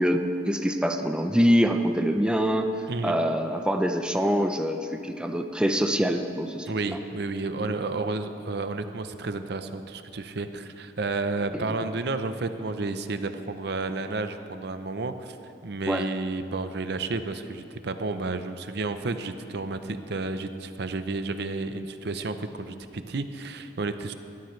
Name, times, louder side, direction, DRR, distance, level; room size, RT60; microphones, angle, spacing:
voice 1, 0.0-2.7 3.0-6.7 11.5-11.8 15.9-16.0, equal, 5° right, 5 dB, 0.6 m, -24 dB
voice 2, 6.7-15.4 15.6-24.1, right 3 dB, 65° right, 9 dB, 0.7 m, -31 dB
20.5 x 13.0 x 3.2 m, 2.6 s
head